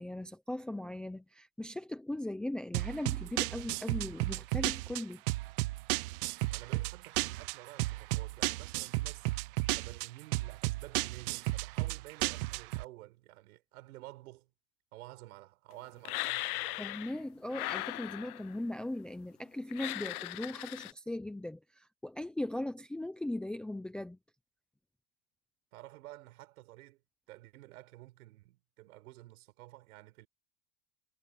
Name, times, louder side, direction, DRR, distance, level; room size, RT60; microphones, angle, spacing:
voice 1, 0.0-5.2 16.8-24.2, left 1 dB, ahead, 0.7 m, -39 dB
sound 1, 2.7-12.8, right 21 dB, 35° right, 0.7 m, -33 dB
voice 2, 6.5-9.3 9.7-14.5 14.9-16.8 25.7-27.0 27.3-30.3, right 17 dB, 65° right, 6.0 m, -51 dB
sound 2, 16.1-17.2 17.5-18.6 19.7-20.9, left 19 dB, 65° left, 0.7 m, -38 dB
supercardioid pair, 165°, 47 cm